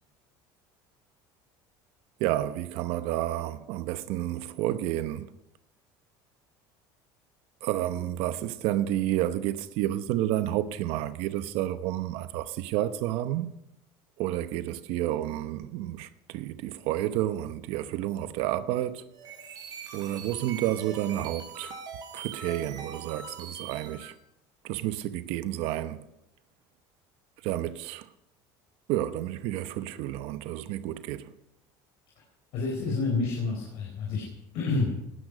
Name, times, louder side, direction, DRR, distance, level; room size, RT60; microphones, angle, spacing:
voice 1, 2.2-5.3 7.6-13.5 14.2-19.1 19.9-21.8 22.1-24.1 24.6-26.0 27.4-28.1 28.9-31.3, right 13 dB, 70° right, 0.8 m, -30 dB
sound 1, 19.1-24.1, right 6 dB, 40° right, 4.3 m, -42 dB
voice 2, 32.5-34.2 34.5-34.9, left 3 dB, 65° left, 4.4 m, -28 dB
17.5 x 13.0 x 5.0 m
cardioid pair, 135°, 10 cm